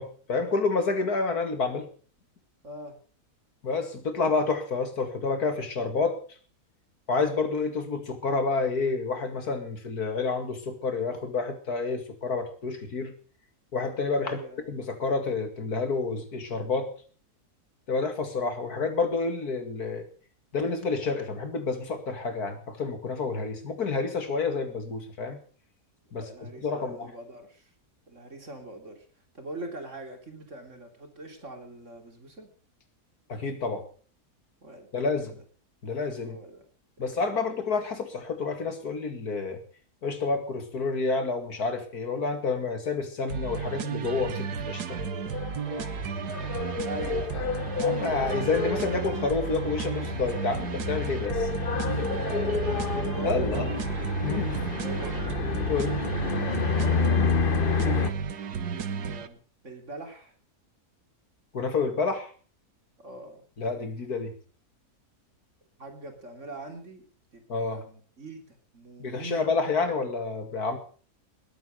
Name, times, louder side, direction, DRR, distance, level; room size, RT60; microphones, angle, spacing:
voice 1, 0.0-1.9 3.6-6.2 7.1-13.1 13.7-14.4 14.7-16.9 17.9-20.0 20.5-25.4 26.1-27.1 33.3-33.8 34.9-35.4 35.8-36.4 37.0-39.6 40.0-45.0 47.8-51.5 53.2-53.7 54.2-54.7 55.7-56.0 61.5-62.3 63.6-64.3 67.5-67.8 69.0-70.8, left 4 dB, 70° left, 7 dB, 2.8 m, -29 dB
voice 2, 2.6-2.9 14.3-14.7 26.1-27.7 28.1-29.1 29.3-32.5 34.6-35.3 36.2-36.7 37.1-37.3 46.8-47.6 51.8-53.8 54.8-55.4 56.2-58.3 58.6-60.4 63.0-63.5 65.8-67.1 67.3-67.4 67.7-69.6, right 2 dB, 50° right, 4 dB, 3.7 m, -42 dB
sound 1, 43.3-59.3, right 6 dB, 75° right, 1.7 m, -33 dB
sound 2, 44.9-58.1, left 6 dB, 40° left, 0.9 m, -30 dB
20.5 x 9.1 x 6.5 m, 0.42 s
omnidirectional pair, 1.7 m